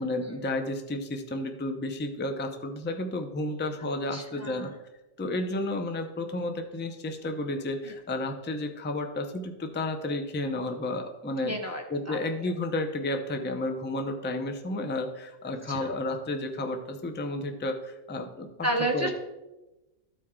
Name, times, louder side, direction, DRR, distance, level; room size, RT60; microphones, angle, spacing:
voice 1, 0.0-4.7 5.2-11.6 11.9-18.5 18.9-19.1, left 2 dB, 15° left, 5 dB, 0.3 m, -32 dB
voice 2, 4.1-4.7 7.8-7.9 11.4-12.2 15.7-15.9 18.6-19.1, right 1 dB, 15° right, 0 dB, 0.8 m, -31 dB
13.0 x 4.5 x 3.7 m, 1.0 s
omnidirectional pair, 1.3 m